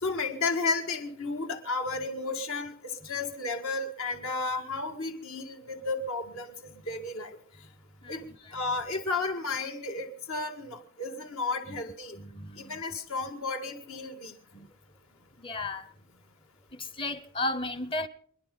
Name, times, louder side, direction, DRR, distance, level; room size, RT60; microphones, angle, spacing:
voice 1, 0.0-6.5 6.9-7.4 8.1-12.2 12.6-14.3, left 3 dB, 70° left, 1.9 m, -33 dB
voice 2, 12.2-12.8 14.5-14.7 15.4-15.9 16.7-18.1, left 2 dB, 25° left, 0.7 m, -34 dB
27.5 x 10.5 x 3.9 m
head